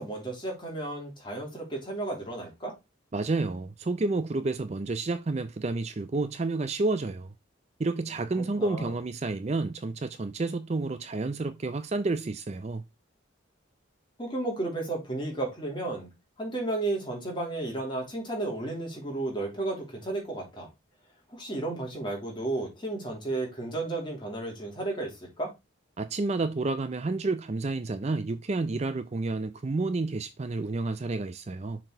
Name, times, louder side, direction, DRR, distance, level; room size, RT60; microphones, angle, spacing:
voice 1, 0.0-2.7 8.6-8.9 14.2-16.1 16.4-20.7 21.3-25.5, right 2 dB, 25° left, 2.9 m, -33 dB
voice 2, 3.1-7.3 7.8-12.8 26.0-31.8, right 3 dB, 30° right, 0.4 m, -30 dB
6.6 x 4.3 x 4.4 m
head